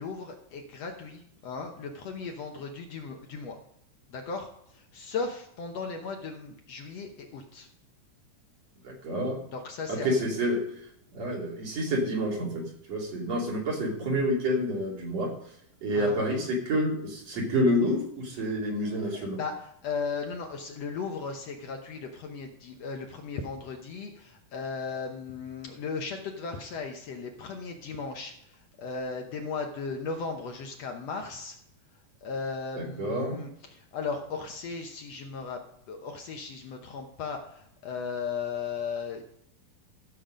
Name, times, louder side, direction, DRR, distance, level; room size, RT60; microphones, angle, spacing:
voice 1, 0.0-3.6 4.1-7.7 9.5-10.2 15.9-16.2 18.4-18.5 18.9-31.6 32.2-35.6 35.9-39.2, left 5 dB, 65° left, 3 dB, 1.9 m, -36 dB
voice 2, 8.8-9.4 9.9-10.6 11.1-12.6 12.9-15.3 15.8-19.4 32.8-33.4, equal, 55° right, -2 dB, 3.9 m, -28 dB
14.5 x 7.4 x 5.1 m, 0.72 s
omnidirectional pair, 3.6 m